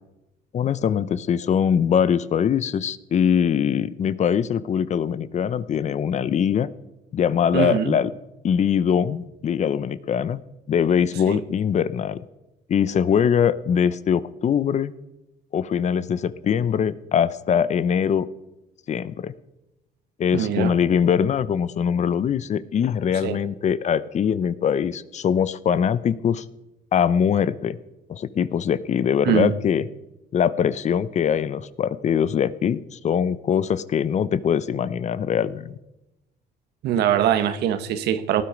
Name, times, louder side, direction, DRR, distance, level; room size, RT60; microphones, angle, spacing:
voice 1, 0.5-6.7 7.1-8.1 8.4-10.4 10.7-12.2 12.7-14.9 15.5-18.3 18.9-19.3 20.2-26.4 26.9-27.8 28.1-29.9 30.3-35.8, left 8 dB, 45° left, 0.7 m, -22 dB
voice 2, 7.5-7.9 11.3-11.4 20.3-20.7 23.2-23.4 29.2-29.5 36.8-38.4, right 10 dB, 75° right, 1.4 m, -22 dB
18.5 x 11.5 x 5.2 m
cardioid pair, 110°, 17 cm